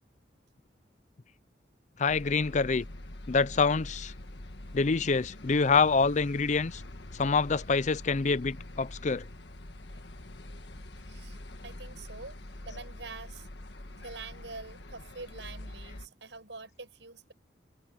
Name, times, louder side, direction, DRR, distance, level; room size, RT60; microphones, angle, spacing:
voice 1, 2.0-2.8 3.3-4.1 4.7-6.8 7.1-9.2, left 4 dB, 40° left, 0.5 m, -26 dB
sound 1, 2.1-16.1, left 1 dB, 70° left, 1.7 m, -45 dB
voice 2, 11.1-12.4 12.6-13.5 14.0-17.3, right 3 dB, 80° right, 6.7 m, -45 dB
head